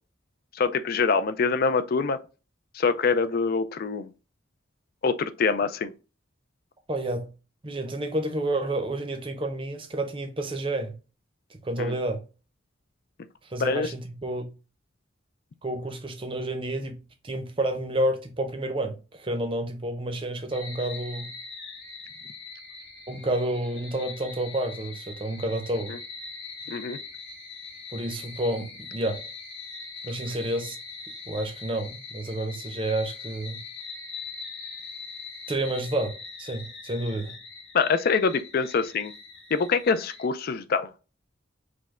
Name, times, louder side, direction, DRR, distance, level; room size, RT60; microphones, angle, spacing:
voice 1, 0.5-2.2 2.7-4.1 5.0-5.9 11.8-11.9 13.6-13.9 25.9-26.0 26.7-27.0 37.7-39.1 39.5-40.9, left 5 dB, 50° left, 0.4 m, -25 dB
voice 2, 6.9-7.3 7.6-10.9 11.5-12.2 13.5-14.5 15.6-16.9 17.2-21.3 23.1-26.0 27.9-29.2 30.0-30.8 31.3-33.6 35.5-37.3, right 1 dB, 25° right, 0.6 m, -30 dB
sound 1, 20.5-40.3, left 4 dB, 70° left, 1.3 m, -42 dB
5.1 x 2.1 x 3.5 m
head